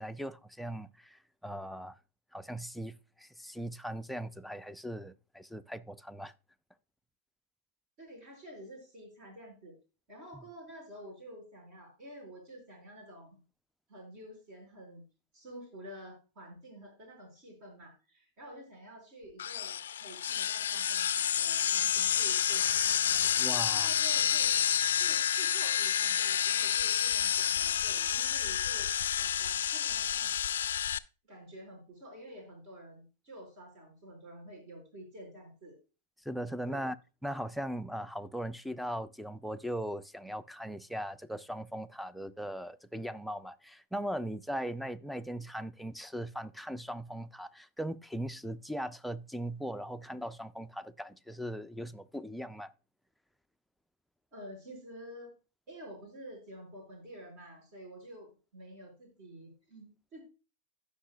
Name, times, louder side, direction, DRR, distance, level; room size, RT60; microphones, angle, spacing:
voice 1, 0.0-2.0 2.3-6.3 10.3-10.4 23.4-23.9 36.2-37.0 37.2-52.7, equal, ahead, 0.5 m, -39 dB
voice 2, 8.0-9.7 10.1-13.4 13.9-15.0 15.3-23.2 23.7-24.5 25.0-28.9 29.2-30.3 31.3-35.8 36.7-36.9 54.3-55.3 55.7-60.2, equal, 50° right, 5.3 m, -49 dB
sound 1, 19.4-31.0, left 9 dB, 70° left, 0.4 m, -29 dB
15.5 x 5.4 x 2.3 m
hypercardioid pair, 100°, 0 cm